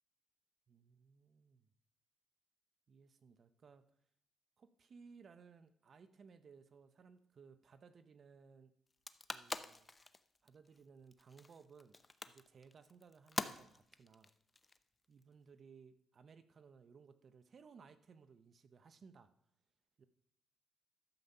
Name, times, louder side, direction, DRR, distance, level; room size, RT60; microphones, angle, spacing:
voice 1, 0.7-1.7 2.9-3.8 4.6-8.7 9.3-9.9 10.4-12.0 12.3-14.3 15.1-19.3 20.0-20.1, right 5 dB, 50° right, 11 dB, 0.7 m, -61 dB
sound 1, 8.9-15.2, left 3 dB, 20° left, 0.6 m, -46 dB
12.0 x 7.3 x 5.4 m, 0.71 s
cardioid pair, 90°, 0 cm